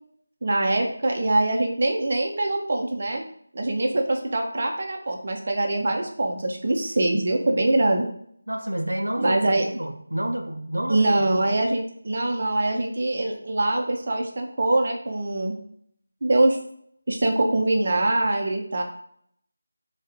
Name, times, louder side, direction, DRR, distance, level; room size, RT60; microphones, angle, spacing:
voice 1, 0.4-3.2 3.5-8.0 9.2-9.7 10.9-15.5 16.2-16.6 17.1-18.8, right 2 dB, 45° right, 2 dB, 0.7 m, -23 dB
voice 2, 8.5-9.4 9.7-11.2, right 1 dB, 85° right, 3 dB, 0.6 m, -28 dB
3.7 x 2.5 x 4.3 m, 0.66 s
figure-of-eight pair, 165°, 0 cm